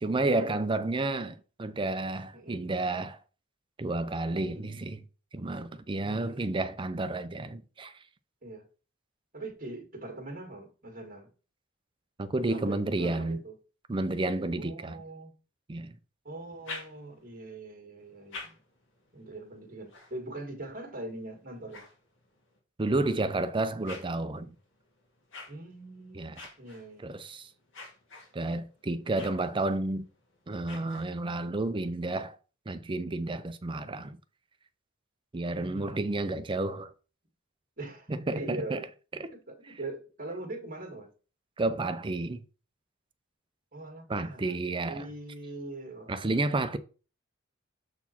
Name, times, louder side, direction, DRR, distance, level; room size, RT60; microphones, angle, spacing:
voice 1, 0.0-3.2 3.8-5.0 5.3-8.0 12.2-13.4 13.9-15.0 15.7-16.0 22.8-24.5 26.1-26.4 27.0-27.5 28.3-30.1 30.5-32.4 32.7-34.2 35.3-36.9 38.1-38.8 39.1-39.3 41.6-42.4 44.1-45.1 46.1-46.8, right 2 dB, 25° right, 0.5 m, -31 dB
voice 2, 4.3-4.8 6.0-6.6 8.4-8.7 9.3-11.3 12.5-13.5 14.6-15.3 16.2-18.6 19.1-21.9 25.5-26.3 26.6-27.0 35.5-36.2 37.8-38.9 39.3-41.1 43.7-44.6 44.9-46.5, right 2 dB, 45° right, 1.9 m, -42 dB
sound 1, 16.4-17.4 18.0-22.6 23.2-31.5, left 3 dB, 65° left, 2.2 m, -50 dB
7.1 x 4.2 x 4.3 m
head